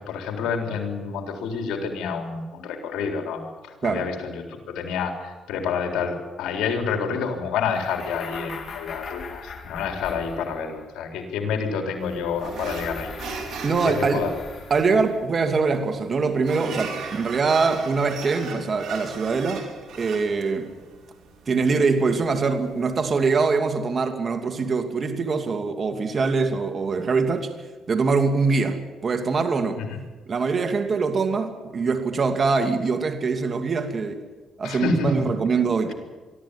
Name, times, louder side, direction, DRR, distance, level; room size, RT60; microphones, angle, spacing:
voice 1, 0.0-13.1 13.8-14.3 29.8-30.0 34.6-35.3, left 5 dB, 85° left, 4 dB, 3.8 m, -28 dB
sound 1, 7.6-10.9 12.0-15.1, left 5 dB, 50° left, 3.0 m, -40 dB
sound 2, 12.4-23.2, right 5 dB, 65° right, 4.9 m, -38 dB
voice 2, 13.6-14.3 14.7-19.7 20.0-20.7 21.5-27.5 27.9-29.8 30.3-34.2 34.6-35.9, right 4 dB, 40° right, 6 dB, 2.5 m, -23 dB
23.5 x 13.5 x 10.0 m, 1.3 s
cardioid pair, 90°, 0 cm